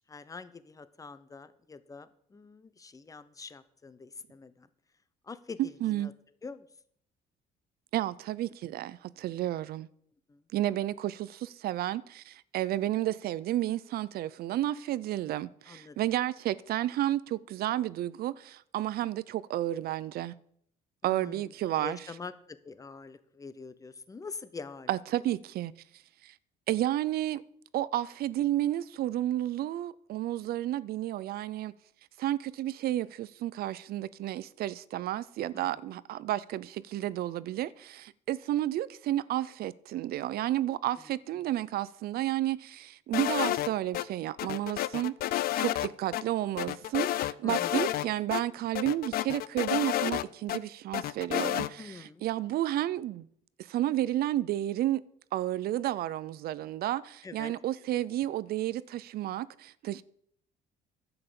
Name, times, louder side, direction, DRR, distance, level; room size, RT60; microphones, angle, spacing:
voice 1, 0.0-4.7 5.2-6.1 6.4-6.7 10.3-10.4 15.7-16.0 21.0-24.9 35.5-35.7 41.3-41.5 47.4-47.7 51.8-52.2 57.2-57.5, left 4 dB, 20° left, 0.8 m, -45 dB
voice 2, 5.6-6.1 7.9-9.9 10.5-20.3 21.0-22.0 24.9-25.7 26.2-26.3 26.7-27.4 27.7-31.7 32.2-53.3 53.6-55.0 55.3-60.0, right 13 dB, 65° right, 0.5 m, -31 dB
sound 1, 43.1-44.0 44.4-45.9 46.1-46.2 46.6-48.1 48.3-48.4 48.7-50.6 50.9-51.7, left 14 dB, 60° left, 0.5 m, -30 dB
10.5 x 7.8 x 6.9 m
cardioid pair, 110°, 17 cm